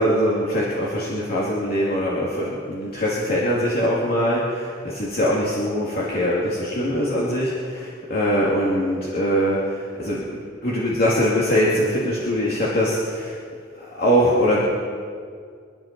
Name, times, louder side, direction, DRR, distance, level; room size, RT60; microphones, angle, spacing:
voice 1, 0.0-13.4 13.7-14.6, equal, 55° left, -6 dB, 2.8 m, -22 dB
26.5 x 11.0 x 4.4 m, 2.1 s
head